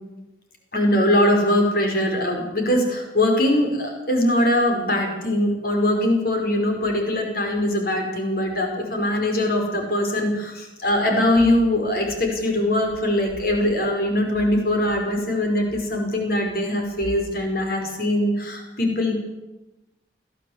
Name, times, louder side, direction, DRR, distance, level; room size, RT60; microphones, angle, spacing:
voice 1, 0.7-19.1, left 1 dB, 50° left, 3 dB, 5.3 m, -22 dB
22.0 x 15.0 x 8.1 m, 1.0 s
head